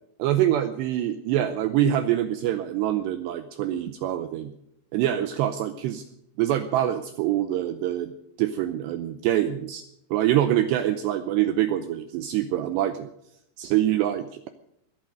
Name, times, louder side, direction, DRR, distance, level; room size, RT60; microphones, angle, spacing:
voice 1, 0.2-4.5 4.9-6.0 6.4-8.1 8.4-9.8 10.1-13.1 13.6-14.5, right 12 dB, 80° right, 9 dB, 2.6 m, -25 dB
21.5 x 8.7 x 6.5 m, 0.76 s
omnidirectional pair, 5.6 m